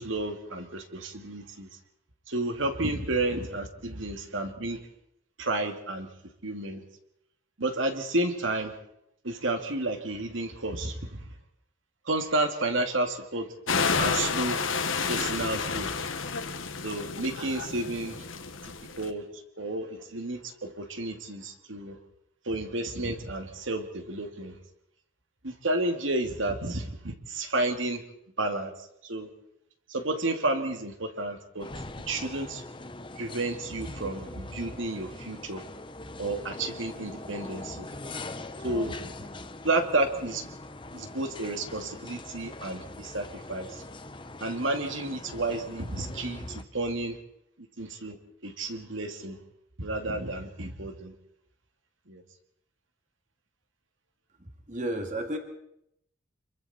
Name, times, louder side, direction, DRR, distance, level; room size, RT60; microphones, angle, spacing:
voice 1, 0.0-1.7 2.3-4.8 5.4-6.1 6.4-6.8 7.6-8.8 9.2-11.2 12.1-13.5 14.0-14.6 15.1-16.1 16.8-18.2 19.0-22.0 22.5-24.5 25.4-28.0 28.4-28.7 29.0-29.3 29.9-31.7 32.1-32.6 33.2-35.6 36.2-37.9 38.6-39.3 39.6-40.5 40.9-43.8 44.4-47.2 47.8-48.2 48.4-49.4 49.8-51.1 52.1-52.2, right 2 dB, 80° right, 6 dB, 2.5 m, -31 dB
sound 1, 13.7-19.1, left 5 dB, 85° left, 1.6 m, -30 dB
sound 2, 31.6-46.6, left 2 dB, 25° left, 0.9 m, -42 dB
voice 2, 54.4-55.4, right 1 dB, 40° right, 4 dB, 2.4 m, -33 dB
26.5 x 23.5 x 4.4 m, 0.76 s
head